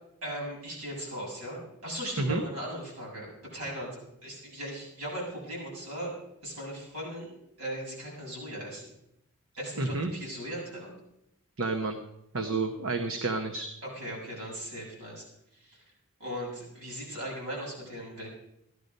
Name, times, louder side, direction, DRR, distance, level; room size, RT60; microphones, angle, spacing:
voice 1, 0.2-6.2 6.4-7.3 7.6-8.9 9.6-10.9 13.8-15.2 15.5-15.8 16.2-18.3, equal, 80° right, -3 dB, 7.3 m, -38 dB
voice 2, 9.8-10.1 11.6-12.0 12.3-13.7, right 3 dB, 65° right, 5 dB, 1.0 m, -29 dB
15.5 x 11.0 x 5.3 m, 0.83 s
head